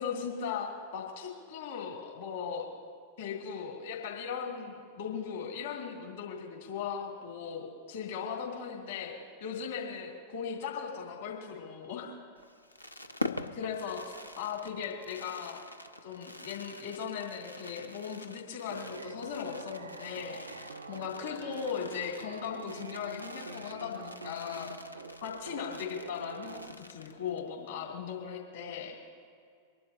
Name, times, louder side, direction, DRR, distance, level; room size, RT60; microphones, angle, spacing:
voice 1, 0.0-2.7 3.2-9.1 9.4-12.1 13.5-15.6 16.0-24.7 25.2-29.0, left 7 dB, 60° left, -2 dB, 3.0 m, -38 dB
Fireworks, 12.4-27.5 27.8-27.9 28.1-28.4, left 2 dB, 85° left, 0.5 m, -45 dB
sound 1, 18.7-26.7, right 4 dB, 75° right, 0.5 m, -46 dB
25.0 x 11.5 x 2.9 m, 2.2 s
figure-of-eight pair, 90°, 0 cm